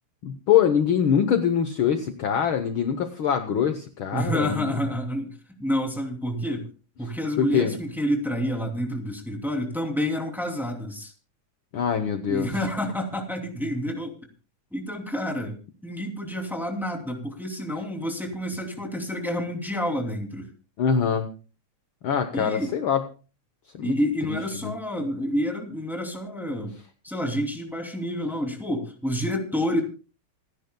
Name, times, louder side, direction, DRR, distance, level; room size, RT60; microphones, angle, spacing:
voice 1, 0.2-4.7 7.4-7.8 11.7-12.5 20.8-21.3 22.0-23.0 23.7-23.9 24.3-24.4 24.6-24.7, left 8 dB, 70° left, 7 dB, 1.2 m, -23 dB
voice 2, 4.1-6.7 7.0-11.1 12.3-14.2 14.7-15.6 15.8-20.5 22.3-22.7 23.8-26.7 27.0-29.8, equal, ahead, 2 dB, 2.2 m, -29 dB
28.0 x 10.5 x 2.2 m, 0.34 s
omnidirectional pair, 3.6 m